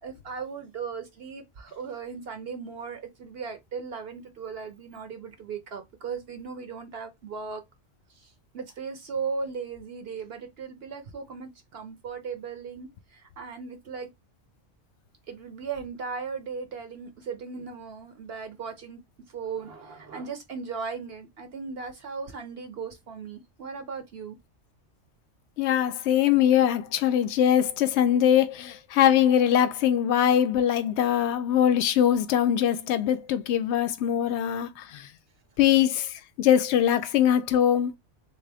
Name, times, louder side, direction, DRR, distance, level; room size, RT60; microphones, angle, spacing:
voice 1, 0.0-7.6 8.2-14.1 15.3-19.0 19.3-24.4, right 5 dB, 60° right, 0.9 m, -37 dB
voice 2, 25.6-34.7 35.6-36.0 36.4-37.9, left 10 dB, 70° left, 0.8 m, -22 dB
3.6 x 2.8 x 3.4 m
omnidirectional pair, 1.2 m